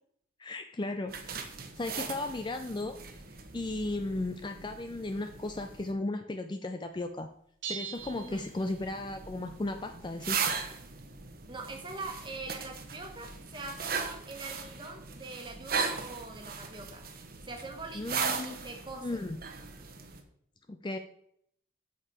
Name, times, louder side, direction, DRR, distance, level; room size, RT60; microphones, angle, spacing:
voice 1, 0.4-1.4 1.8-2.9 3.5-7.3 7.7-10.4 17.9-18.6 19.0-19.4 20.7-21.0, left 2 dB, 25° left, 7 dB, 0.4 m, -35 dB
sound 1, 1.1-5.9 7.9-20.2, right 5 dB, 45° right, 1.0 m, -38 dB
sound 2, 7.6-9.2, right 7 dB, 70° right, 1.7 m, -42 dB
voice 2, 8.1-8.5 11.5-17.1 17.4-19.2, right 3 dB, 25° right, 3 dB, 1.5 m, -43 dB
8.4 x 7.0 x 4.3 m, 0.70 s
head